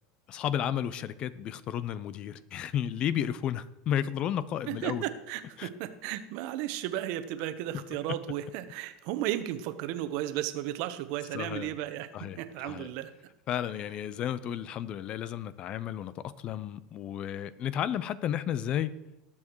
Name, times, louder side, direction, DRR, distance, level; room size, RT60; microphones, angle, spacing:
voice 1, 0.3-5.0 5.6-5.7 7.7-7.8 11.3-11.7 12.1-12.9 13.5-18.9, left 10 dB, 40° left, 16 dB, 0.7 m, -33 dB
voice 2, 4.7-12.1 12.4-13.1, right 13 dB, 60° right, 11 dB, 1.1 m, -34 dB
19.0 x 7.4 x 4.7 m, 0.98 s
supercardioid pair, 120°, 3 cm